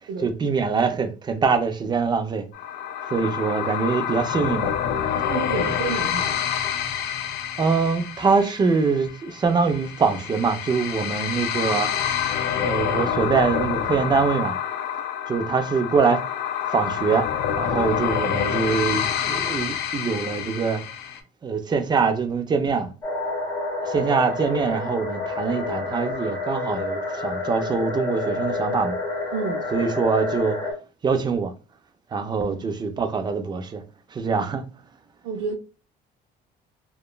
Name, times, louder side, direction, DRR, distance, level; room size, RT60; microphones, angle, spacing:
voice 1, 0.2-2.5 3.1-4.7 7.6-11.9 12.6-14.6 15.3-16.2 16.7-17.3 17.6-20.8 21.4-22.9 23.9-28.9 29.7-30.6 31.0-31.5 32.1-33.8 34.1-34.6, right 5 dB, 25° right, 0.4 m, -23 dB
sound 1, 2.5-21.2, left 8 dB, 75° left, 0.4 m, -27 dB
voice 2, 5.3-6.4 29.3-29.6 35.2-35.5, right 4 dB, 90° right, 0.5 m, -30 dB
sound 2, 23.0-30.7, left 3 dB, 20° left, 1.2 m, -29 dB
2.8 x 2.2 x 2.2 m
cardioid pair, 110°, 17 cm